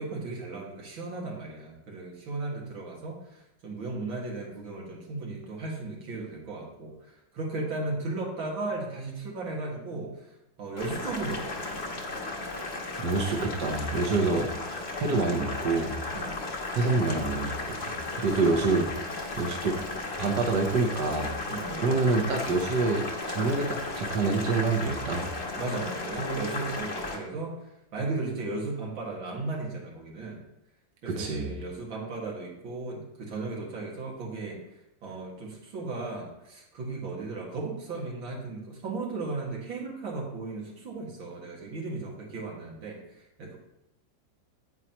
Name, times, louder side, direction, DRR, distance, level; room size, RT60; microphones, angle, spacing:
voice 1, 0.0-12.0 16.1-16.4 18.2-18.4 21.5-21.9 25.6-30.4 31.0-34.6 35.0-43.6, right 3 dB, 85° right, -2 dB, 2.7 m, -36 dB
Boiling, 10.8-27.2, left 2 dB, 35° left, 1.3 m, -35 dB
voice 2, 13.0-16.0 16.7-18.9 19.4-19.8 20.2-21.3 21.8-25.3 31.1-31.5, right 3 dB, 65° right, 1 dB, 1.6 m, -27 dB
9.6 x 8.7 x 3.0 m, 0.88 s
omnidirectional pair, 2.1 m